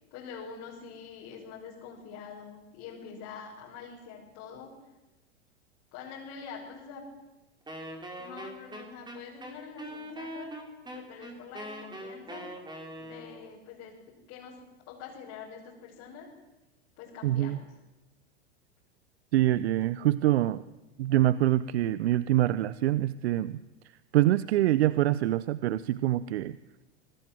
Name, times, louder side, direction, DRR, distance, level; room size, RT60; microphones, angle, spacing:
voice 1, 0.1-4.7 5.9-7.0 8.2-10.5 10.9-12.5 13.0-14.6 14.9-16.3 17.0-17.6, left 6 dB, 45° left, -4 dB, 6.5 m, -45 dB
Wind instrument woodwind instrument, 7.7-13.5, right 1 dB, 15° right, 5.3 m, -42 dB
voice 2, 17.2-17.6 19.3-20.6 21.0-23.6 24.1-26.6, right 14 dB, 70° right, 17 dB, 0.8 m, -25 dB
26.5 x 21.0 x 7.8 m, 1.0 s
hypercardioid pair, 100°, 34 cm